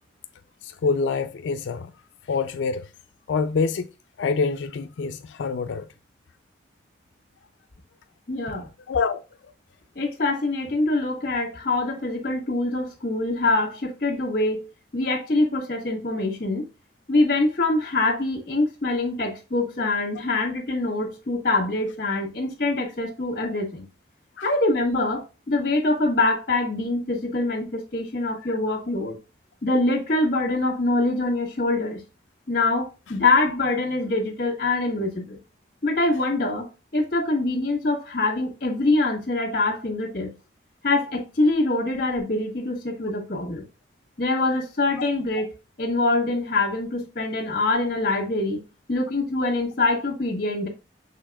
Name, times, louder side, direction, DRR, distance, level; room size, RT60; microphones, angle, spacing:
voice 1, 0.6-1.9 2.3-2.9 3.3-3.9 4.2-5.9 8.9-9.2 24.4-24.5, left 4 dB, 85° left, 0.4 m, -26 dB
voice 2, 8.3-8.7 9.9-14.6 14.9-16.7 17.1-23.9 24.4-29.2 29.6-32.0 32.5-35.4 35.8-40.3 40.8-43.7 44.2-45.5 45.8-48.6 48.9-50.7, left 2 dB, 50° left, 1.4 m, -24 dB
6.6 x 3.4 x 2.3 m
head